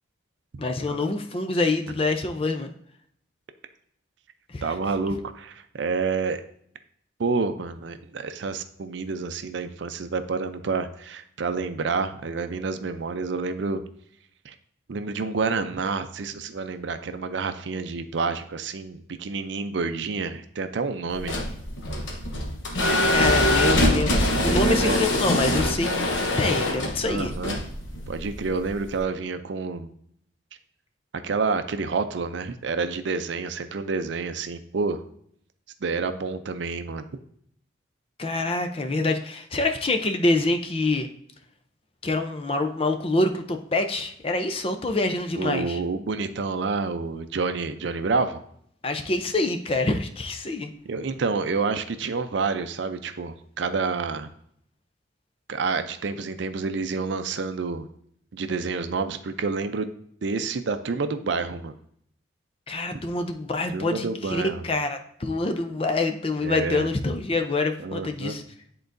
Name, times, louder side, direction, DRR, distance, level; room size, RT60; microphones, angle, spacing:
voice 1, 0.6-2.7 4.5-4.6 23.1-26.0 26.4-27.3 38.2-41.1 42.0-45.8 48.8-50.7 62.7-68.4, left 2 dB, 30° left, 7 dB, 0.5 m, -26 dB
voice 2, 4.6-6.4 7.2-13.8 14.4-14.5 14.9-21.4 24.4-25.0 27.0-27.6 28.1-29.9 31.1-35.0 35.8-37.1 45.4-48.4 50.8-54.3 55.5-57.9 58.3-59.9 60.2-61.8 63.7-64.6 66.4-66.9 67.8-68.4, right 4 dB, 70° right, 9 dB, 0.5 m, -28 dB
sound 1, 21.1-29.0, left 1 dB, 75° left, 1.0 m, -24 dB
10.0 x 3.8 x 2.6 m, 0.67 s
head